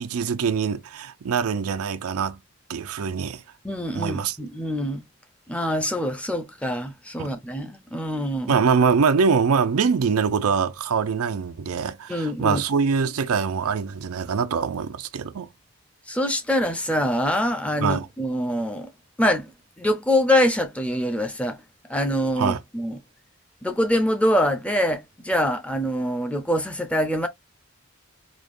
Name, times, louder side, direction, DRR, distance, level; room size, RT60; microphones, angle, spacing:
voice 1, 0.0-2.4 2.7-3.4 3.9-4.4 7.2-7.3 8.5-15.5 17.8-18.1 22.4-22.6, right 5 dB, 85° right, 0.5 m, -23 dB
voice 2, 3.6-5.0 5.5-8.6 12.1-12.6 16.1-18.9 19.2-19.5 19.8-21.6 21.9-23.0 23.6-27.3, left 1 dB, 5° left, 0.5 m, -24 dB
5.0 x 2.3 x 2.4 m
head